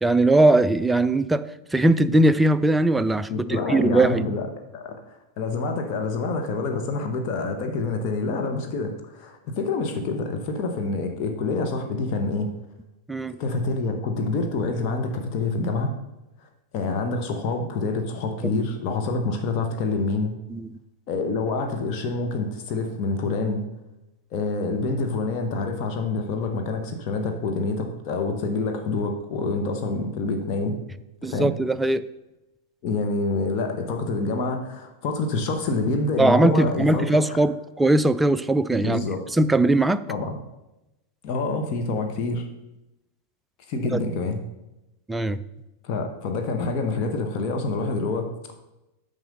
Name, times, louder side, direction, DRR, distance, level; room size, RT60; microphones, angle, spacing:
voice 1, 0.0-4.2 13.1-13.3 18.4-18.5 20.5-20.8 31.2-32.1 36.2-39.1 39.3-40.0 43.9-44.0 45.1-45.4, right 2 dB, 5° right, 13 dB, 0.4 m, -20 dB
voice 2, 3.3-4.5 4.7-12.5 13.4-15.9 16.7-20.3 21.1-23.6 24.3-30.8 31.2-31.5 32.8-37.1 38.7-39.2 40.1-40.4 41.2-42.5 43.7-44.4 45.8-48.3, left 3 dB, 40° left, 4 dB, 1.1 m, -27 dB
9.2 x 5.3 x 5.3 m, 0.95 s
figure-of-eight pair, 90°, 0 cm